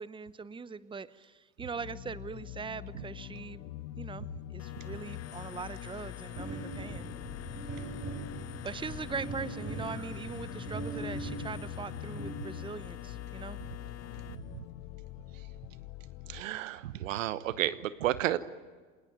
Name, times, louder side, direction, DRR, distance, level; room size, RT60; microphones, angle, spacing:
voice 1, 0.0-3.6 4.0-7.1 8.6-13.6, right 5 dB, 15° right, 17 dB, 0.9 m, -41 dB
sound 1, 1.7-16.4, left 14 dB, 65° left, 1.2 m, -44 dB
sound 2, 4.6-14.4, left 10 dB, 40° left, 1.4 m, -47 dB
sound 3, 6.4-13.0, right 2 dB, 40° right, 7.6 m, -41 dB
voice 2, 16.3-18.4, right 13 dB, 80° right, 16 dB, 1.1 m, -31 dB
27.0 x 19.5 x 9.3 m, 1.4 s
hypercardioid pair, 75°, 38 cm